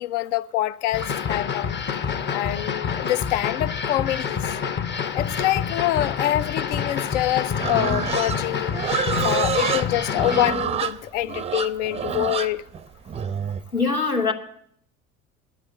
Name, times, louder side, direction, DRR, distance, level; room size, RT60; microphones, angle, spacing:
voice 1, 0.0-1.8 2.3-4.6 5.1-8.8 9.2-12.6, left 14 dB, 60° left, 0.6 m, -25 dB
sound 1, 0.9-10.5, left 6 dB, 25° left, 0.7 m, -28 dB
Livestock farm animals working animals, 7.6-13.6, right 7 dB, 15° right, 0.5 m, -27 dB
voice 2, 13.7-14.3, left 4 dB, 90° left, 1.2 m, -23 dB
9.3 x 9.1 x 9.2 m
figure-of-eight pair, 65°, 42 cm